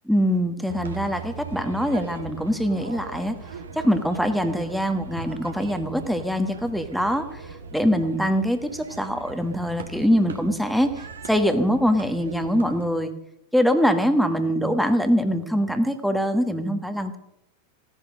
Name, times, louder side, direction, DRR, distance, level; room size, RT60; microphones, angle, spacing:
voice 1, 0.1-3.4 3.7-7.4 7.7-13.1 13.5-17.2, equal, ahead, 8 dB, 1.4 m, -23 dB
sound 1, 0.7-12.9, right 5 dB, 70° right, 1.7 m, -40 dB
16.5 x 11.0 x 6.5 m, 0.82 s
figure-of-eight pair, 90°, 0 cm